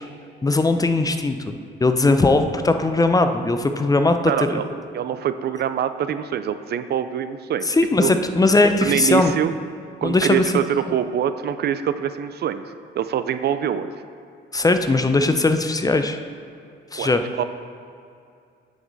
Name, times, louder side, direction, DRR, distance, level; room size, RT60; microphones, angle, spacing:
voice 1, 0.4-4.6 7.7-9.3 10.0-10.4 14.5-16.2 16.9-17.2, left 2 dB, 20° left, 7 dB, 0.5 m, -19 dB
voice 2, 4.3-4.6 4.9-7.7 8.0-8.1 8.8-9.5 10.0-12.6 13.0-13.9 17.0-17.4, right 9 dB, 55° right, 11 dB, 0.4 m, -24 dB
9.5 x 5.1 x 4.0 m, 2.5 s
cardioid pair, 90°, 20 cm